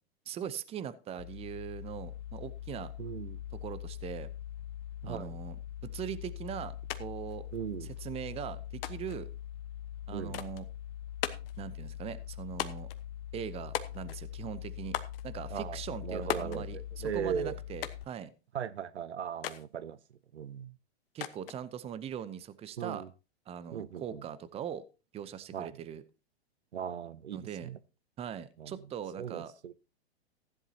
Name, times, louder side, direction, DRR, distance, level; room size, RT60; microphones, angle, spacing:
voice 1, 0.3-2.9 3.6-4.3 5.0-5.6 5.8-7.5 7.8-9.3 10.1-10.7 11.6-12.9 13.3-18.3 21.1-23.0 23.5-24.8 25.1-26.0 27.3-27.7 28.2-29.5, right 9 dB, 20° right, 0.7 m, -41 dB
sound 1, 1.2-18.0, left 11 dB, 40° left, 0.6 m, -43 dB
voice 2, 3.0-3.4 5.0-5.4 7.5-7.9 10.1-10.4 15.5-17.6 18.5-20.0 20.3-20.8 22.8-23.1 23.7-24.2 25.5-25.8 26.7-27.8 28.6-28.8 29.2-29.7, right 8 dB, 80° right, 0.8 m, -38 dB
sound 2, 6.9-7.0 7.3-8.0 8.8-9.2 10.3-10.7 11.2-11.6 12.6-13.0 13.7-14.3 14.9-15.2 16.3-16.6 17.8-18.1 19.4-19.7 21.2-21.6, left 11 dB, 60° left, 1.2 m, -37 dB
15.0 x 11.0 x 2.8 m
hypercardioid pair, 115°, 33 cm